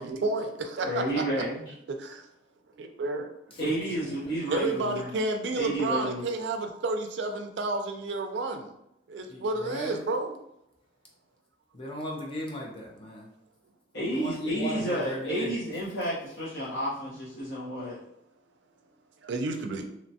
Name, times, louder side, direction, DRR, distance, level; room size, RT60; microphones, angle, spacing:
voice 1, 0.0-1.0 1.9-2.3 2.8-3.4 4.5-8.7 9.1-10.3 19.2-19.9, right 2 dB, 60° right, 6 dB, 0.4 m, -31 dB
voice 2, 0.8-1.6 3.6-5.1 5.5-6.2 13.9-18.0, right 1 dB, 60° left, -10 dB, 0.8 m, -31 dB
voice 3, 9.2-10.0 11.7-13.3 14.1-15.5, equal, 30° left, -2 dB, 0.4 m, -36 dB
2.9 x 2.2 x 2.7 m, 0.80 s
head